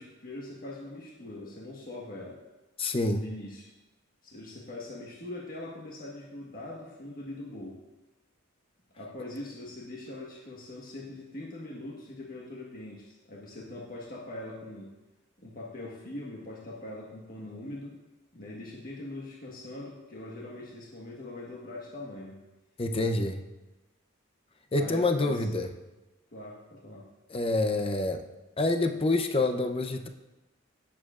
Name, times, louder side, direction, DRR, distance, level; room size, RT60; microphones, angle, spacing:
voice 1, 0.0-2.4 3.1-3.7 4.2-7.8 9.0-14.9 15.4-17.9 18.3-22.4 24.8-25.5 26.3-27.1, left 1 dB, 45° left, -4 dB, 1.4 m, -42 dB
voice 2, 2.8-3.3 22.8-23.4 24.7-25.7 27.3-28.2 28.6-30.1, left 2 dB, 25° left, 7 dB, 0.6 m, -27 dB
17.0 x 7.2 x 2.5 m, 1.1 s
head